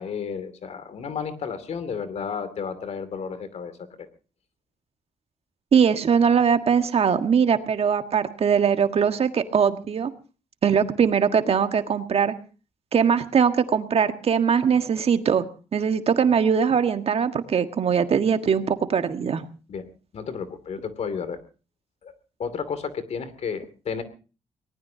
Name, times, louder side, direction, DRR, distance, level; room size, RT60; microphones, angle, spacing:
voice 1, 0.0-3.7 4.0-4.1 19.7-19.9 20.1-21.4 22.0-22.1 22.4-24.0, left 6 dB, 65° left, 13 dB, 2.6 m, -32 dB
voice 2, 5.7-10.1 10.6-12.3 12.9-15.4 15.7-19.4, right 7 dB, 55° right, 8 dB, 1.6 m, -21 dB
24.0 x 19.0 x 2.8 m, 0.35 s
cardioid pair, 65°, 12 cm